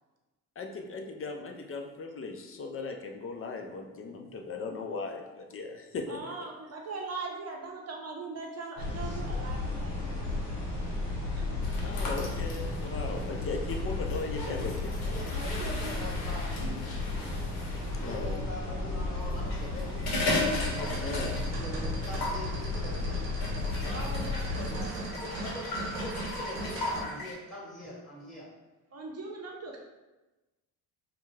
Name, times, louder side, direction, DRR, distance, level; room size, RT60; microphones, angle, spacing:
voice 1, 0.6-6.2 11.8-14.9 17.9-18.4 21.0-21.4, left 3 dB, 30° left, 3 dB, 0.4 m, -37 dB
voice 2, 6.1-10.1 11.4-11.5 15.3-16.0 20.3-20.8 23.8-25.0 28.9-29.8, right 3 dB, 35° right, 0 dB, 0.7 m, -40 dB
sound 1, 8.8-24.8, left 2 dB, 85° left, 1.0 m, -33 dB
sound 2, 11.6-18.2 19.3-21.7 21.9-22.4 23.4-27.3, left 2 dB, 60° left, 0.8 m, -37 dB
voice 3, 14.9-16.7 17.9-20.0 21.5-23.3 25.1-28.5, left 1 dB, ahead, -4 dB, 0.9 m, -43 dB
sound 3, 20.3-27.0, right 2 dB, 70° right, 0.9 m, -40 dB
2.4 x 2.3 x 3.1 m, 1.1 s
hypercardioid pair, 60°, 45 cm